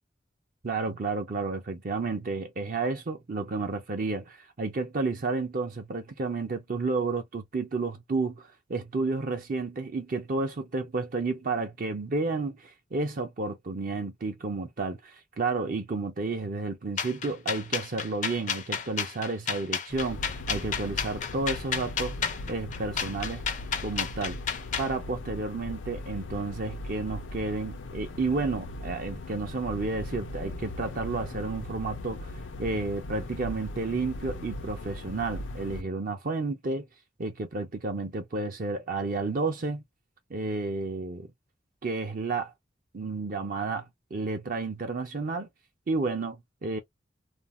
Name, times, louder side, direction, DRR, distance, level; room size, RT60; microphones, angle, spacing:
voice 1, 0.6-23.4 23.8-24.4 24.8-32.3 32.6-36.9 37.2-39.8 40.3-41.3 41.8-42.5 42.9-45.5 45.9-46.8, right 3 dB, 45° right, 0.5 m, -31 dB
sound 1, 17.0-24.9, left 7 dB, 40° left, 0.4 m, -32 dB
sound 2, 19.9-35.8, left 1 dB, 90° left, 0.6 m, -39 dB
2.5 x 2.0 x 3.0 m
head